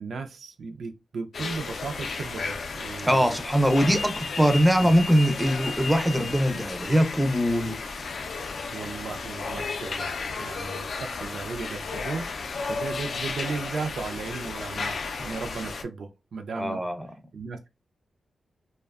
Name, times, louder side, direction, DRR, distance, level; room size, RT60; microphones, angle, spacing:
voice 1, 0.0-3.4 4.8-4.9 8.7-16.8 17.3-17.7, right 4 dB, 75° right, 0.4 m, -36 dB
sound 1, 1.3-15.8, left 4 dB, 65° left, 0.3 m, -33 dB
voice 2, 3.0-7.8 16.6-17.1, equal, 5° right, 0.4 m, -22 dB
2.5 x 2.1 x 2.3 m
wide cardioid pair, 105°, 0 cm